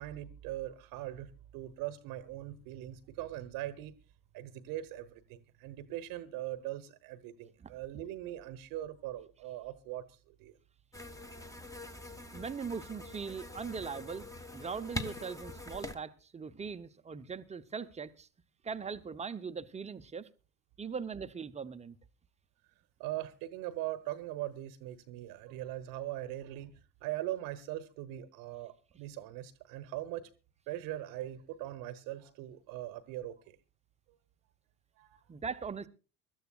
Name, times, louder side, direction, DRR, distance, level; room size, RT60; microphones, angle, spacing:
voice 1, 0.0-3.9 4.3-10.5 23.0-30.3 30.7-33.6 35.0-35.2, right 14 dB, 55° right, 1.0 m, -41 dB
sound 1, 10.9-15.9, left 2 dB, 10° left, 1.1 m, -44 dB
voice 2, 12.3-14.3 14.5-18.3 18.6-20.3 20.8-22.0 35.3-35.9, right 5 dB, 15° right, 0.8 m, -40 dB
24.5 x 12.5 x 2.4 m
figure-of-eight pair, 65°, 42 cm